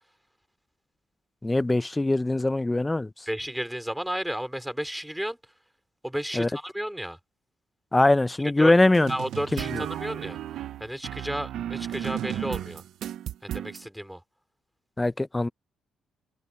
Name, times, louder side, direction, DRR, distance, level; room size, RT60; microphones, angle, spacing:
voice 1, 1.4-3.1 6.4-6.5 7.9-9.1 9.5-9.8 15.0-15.5, left 2 dB, 15° left, 0.8 m, -22 dB
voice 2, 3.3-5.4 6.0-7.2 8.4-8.7 9.1-10.4 10.8-12.8 13.4-14.2, equal, 5° right, 3.9 m, -32 dB
sound 1, 8.9-13.8, right 11 dB, 75° right, 0.7 m, -34 dB
cardioid pair, 90°, 0 cm